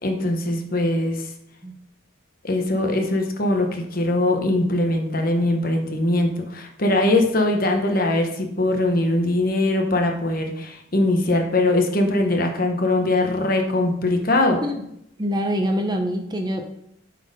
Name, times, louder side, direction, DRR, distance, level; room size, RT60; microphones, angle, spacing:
voice 1, 0.0-1.2 2.4-14.6, left 2 dB, 45° left, 3 dB, 1.1 m, -21 dB
voice 2, 15.2-16.7, equal, 20° right, 4 dB, 0.6 m, -24 dB
7.8 x 4.2 x 5.2 m, 0.77 s
head